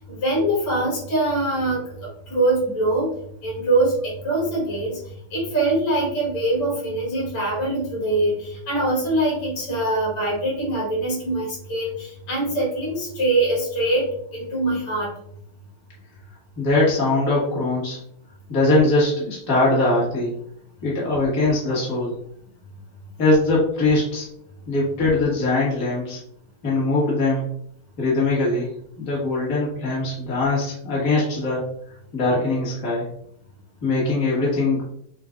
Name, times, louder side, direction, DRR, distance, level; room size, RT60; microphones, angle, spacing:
voice 1, 0.1-3.1 3.4-5.0 5.3-14.1 14.3-15.1, right 2 dB, 75° left, -5 dB, 2.5 m, -23 dB
voice 2, 16.6-18.0 18.5-20.3 20.8-22.1 23.2-24.3 24.7-26.2 26.6-27.5 28.0-31.7 32.1-33.1 33.8-34.8, left 2 dB, 40° left, -6 dB, 1.9 m, -21 dB
7.0 x 2.6 x 2.4 m, 0.70 s
omnidirectional pair, 2.4 m